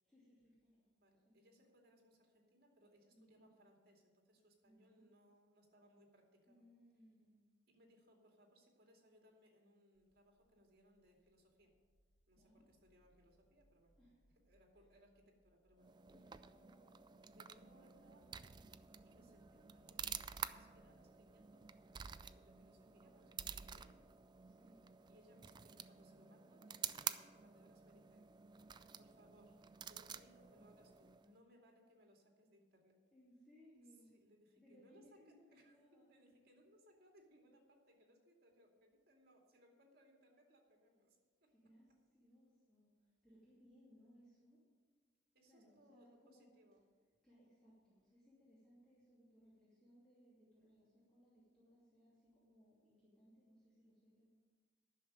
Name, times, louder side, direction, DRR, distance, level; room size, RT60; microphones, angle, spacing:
voice 1, 0.1-0.8 1.2-1.4 3.1-3.5 4.6-5.1 6.5-7.3 12.3-12.7 14.0-14.2 16.0-17.0 18.0-18.5 19.0-19.3 24.4-24.8 33.1-34.2 34.6-36.1 41.5-42.9 43.2-44.6 45.4-46.5 47.2-54.3, equal, 5° left, -9 dB, 2.6 m, -67 dB
voice 2, 1.0-6.6 7.7-11.7 12.3-13.9 14.5-15.9 17.3-18.5 19.0-21.6 22.3-24.0 25.1-28.2 29.0-29.6 29.9-33.0 34.1-41.5 45.3-46.8, equal, 55° right, 1 dB, 2.5 m, -69 dB
sound 1, 9.9-22.9, equal, 50° left, 1.1 m, -77 dB
sound 2, 15.8-31.4, right 8 dB, 25° right, 0.3 m, -50 dB
11.0 x 6.6 x 8.9 m, 1.4 s
head